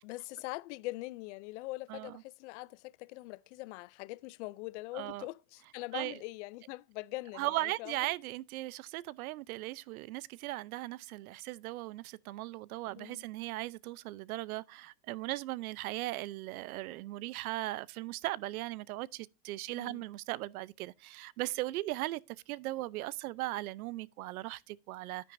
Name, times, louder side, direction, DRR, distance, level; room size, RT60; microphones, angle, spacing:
voice 1, 0.0-8.0 13.0-13.2 19.7-20.0, left 21 dB, 55° left, 0.5 m, -43 dB
voice 2, 1.9-2.2 4.9-5.3 5.9-6.2 7.3-22.2 22.5-25.3, right 18 dB, 75° right, 0.7 m, -38 dB
10.0 x 9.4 x 2.6 m
supercardioid pair, 145°, 43 cm